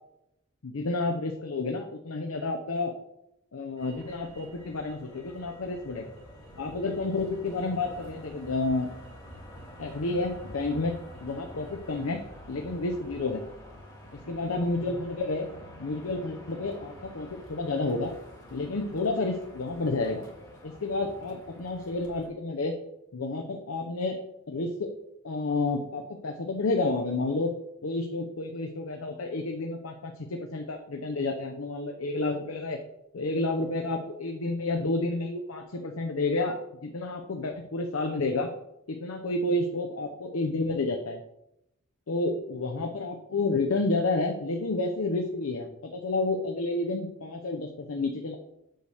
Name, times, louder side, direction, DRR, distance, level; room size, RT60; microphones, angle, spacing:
voice 1, 0.6-2.9 3.5-6.1 6.6-8.9 9.8-12.2 12.5-13.4 14.3-15.5 15.8-18.1 18.5-20.3 20.6-22.7 23.1-24.2 24.5-24.9 25.2-27.5 27.8-32.8 33.1-36.5 36.8-38.5 38.9-41.2 42.1-48.4, left 2 dB, 80° left, 4 dB, 0.7 m, -30 dB
Motor vehicle (road), 3.8-22.3, equal, 20° left, 1.7 m, -48 dB
7.9 x 3.4 x 6.3 m, 0.82 s
head